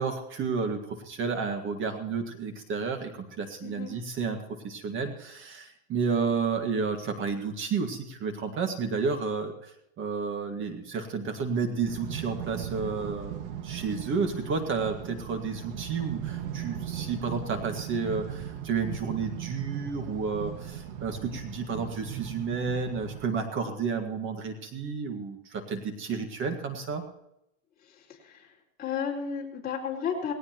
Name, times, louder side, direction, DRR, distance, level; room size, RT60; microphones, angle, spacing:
voice 1, 0.0-27.0, right 5 dB, 30° right, 6 dB, 1.9 m, -31 dB
voice 2, 3.6-3.9 27.9-28.5 28.8-30.3, left 7 dB, 25° left, -3 dB, 4.4 m, -33 dB
sound 1, 11.9-23.3, right 9 dB, 60° right, 1.8 m, -38 dB
18.5 x 18.0 x 3.0 m, 0.82 s
supercardioid pair, 140°, 39 cm